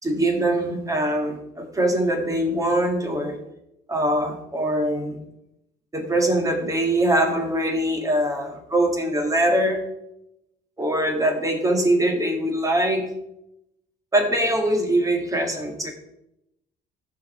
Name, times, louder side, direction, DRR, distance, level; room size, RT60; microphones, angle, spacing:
voice 1, 0.0-3.3 3.9-5.2 5.9-9.8 10.8-13.0 14.1-15.9, right 1 dB, 20° right, 4 dB, 2.0 m, -22 dB
13.5 x 5.2 x 4.3 m, 0.84 s
cardioid pair, 110°, 17 cm